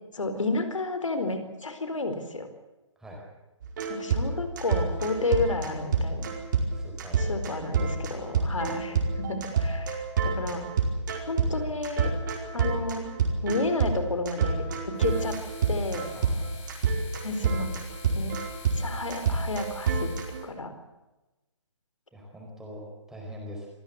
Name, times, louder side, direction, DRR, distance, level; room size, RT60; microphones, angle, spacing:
voice 1, 0.1-2.5 3.9-6.3 7.2-10.7 11.3-12.1 12.5-13.1 13.4-15.4 15.7-16.1 17.2-17.7 18.1-18.4 18.8-20.1 20.4-20.7, left 2 dB, 90° left, 9 dB, 4.5 m, -31 dB
sound 1, 3.6-20.4, right 5 dB, 40° right, 4.8 m, -27 dB
voice 2, 6.7-7.3 7.8-7.9 14.7-14.8 16.1-16.7 22.1-23.7, equal, 5° right, -1 dB, 4.6 m, -43 dB
sound 2, 14.9-20.5, left 5 dB, 30° left, 7.6 m, -48 dB
26.5 x 15.5 x 8.1 m, 1.1 s
hypercardioid pair, 160°, 16 cm